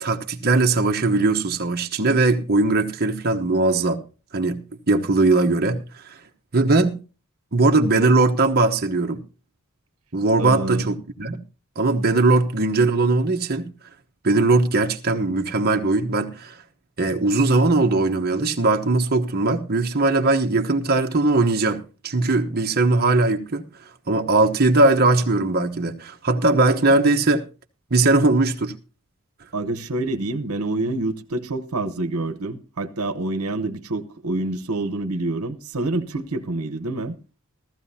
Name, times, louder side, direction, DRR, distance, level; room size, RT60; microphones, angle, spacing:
voice 1, 0.0-4.0 4.3-4.6 4.9-6.0 6.5-7.0 7.5-9.2 10.1-11.4 11.8-13.7 14.2-16.6 17.0-23.6 24.1-27.4 27.9-28.7, right 2 dB, 45° right, 1.0 m, -20 dB
voice 2, 10.4-10.9 29.5-37.2, right 2 dB, 75° right, 1.0 m, -27 dB
15.0 x 14.5 x 2.8 m
head